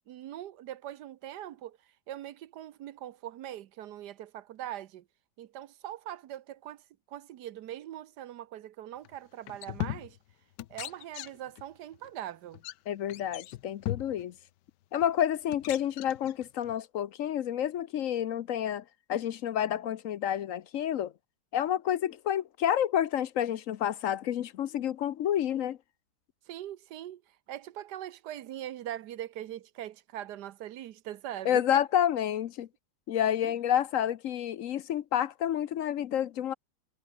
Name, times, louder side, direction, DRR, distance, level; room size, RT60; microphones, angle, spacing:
voice 1, 0.0-1.8 2.1-5.0 5.4-6.8 7.1-10.2 10.7-12.6 26.5-27.2 27.5-31.8 33.4-33.5, right 12 dB, 80° right, 1.3 m, -41 dB
sound 1, 9.0-9.2 9.5-10.3 10.6-11.6 11.9-12.1 12.5-12.7 13.1-14.3 15.0-15.1 15.5-16.8, left 14 dB, 85° left, 1.3 m, -38 dB
voice 2, 12.9-14.3 14.9-21.1 21.5-25.8 31.4-32.7 33.1-36.5, left 10 dB, 60° left, 0.9 m, -29 dB
omnidirectional pair, 1.8 m